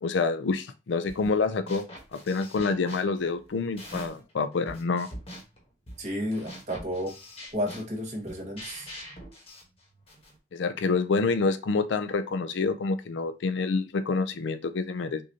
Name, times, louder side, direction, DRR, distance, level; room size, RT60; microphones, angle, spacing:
voice 1, 0.0-1.8 2.1-5.1 10.5-15.2, left 4 dB, 80° left, 0.4 m, -27 dB
sound 1, 1.1-1.4 1.7-4.3 4.7-10.4, equal, 30° left, 1.1 m, -44 dB
voice 2, 6.0-7.2 7.5-8.9, equal, 40° right, 1.4 m, -32 dB
6.2 x 2.6 x 2.8 m
head